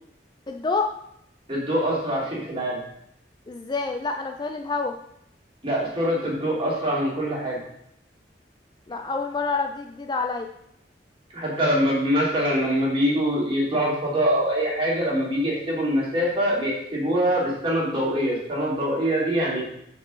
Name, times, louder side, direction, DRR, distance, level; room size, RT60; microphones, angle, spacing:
voice 1, 0.5-0.9 3.5-4.9 8.9-10.5, left 4 dB, 25° left, 4 dB, 0.4 m, -27 dB
voice 2, 1.5-2.8 5.6-7.6 11.3-19.6, equal, 30° right, -5 dB, 2.8 m, -24 dB
6.2 x 4.4 x 6.2 m, 0.76 s
head